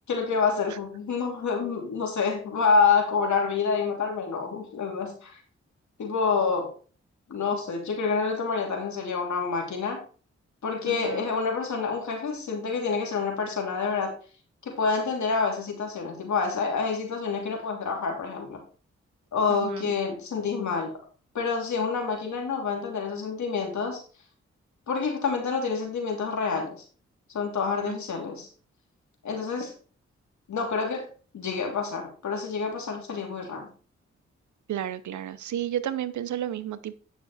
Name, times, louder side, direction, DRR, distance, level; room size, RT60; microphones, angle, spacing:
voice 1, 0.1-5.4 6.0-6.7 7.3-10.0 10.6-14.1 14.6-18.6 19.3-20.9 21.3-24.0 24.9-26.8 27.3-28.5 29.2-29.7 30.5-31.1 31.3-33.7, left 5 dB, 75° left, 2 dB, 2.9 m, -27 dB
voice 2, 10.9-11.3 19.5-19.9 27.9-28.0 34.7-37.0, right 11 dB, 75° right, 15 dB, 0.7 m, -32 dB
9.4 x 6.1 x 4.1 m, 0.39 s
supercardioid pair, 40°, 29 cm